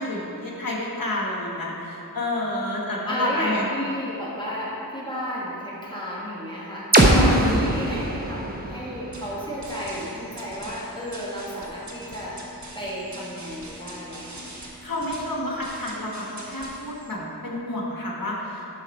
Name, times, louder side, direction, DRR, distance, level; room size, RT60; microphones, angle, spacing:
voice 1, 0.0-3.6 7.1-7.7 14.6-18.6, left 1 dB, 60° left, -3 dB, 1.9 m, -29 dB
voice 2, 3.1-14.5, equal, 10° left, -8 dB, 2.2 m, -33 dB
sound 1, 6.9-10.8, right 1 dB, 25° right, 1.1 m, -23 dB
sound 2, 9.1-17.1, right 1 dB, 45° right, 1.4 m, -42 dB
12.5 x 5.5 x 4.5 m, 3.0 s
wide cardioid pair, 45°, 39 cm